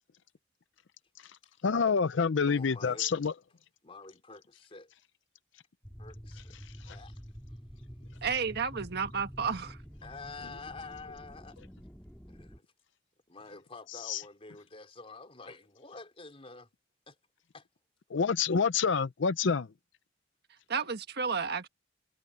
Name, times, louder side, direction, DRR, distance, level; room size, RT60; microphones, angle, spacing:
voice 1, 1.6-3.3 6.8-7.0 14.1-14.2 18.1-19.7, left 5 dB, 70° left, 0.6 m, -27 dB
voice 2, 2.5-3.1 3.8-4.9 6.0-6.6 6.9-7.1 10.0-11.6 12.3-12.7 13.3-16.7 17.1-17.2 17.5-17.7, left 3 dB, 30° left, 3.8 m, -48 dB
sound 1, 5.8-12.6, equal, 5° left, 4.6 m, -48 dB
voice 3, 8.2-9.8 20.7-21.7, right 5 dB, 55° right, 1.5 m, -32 dB
head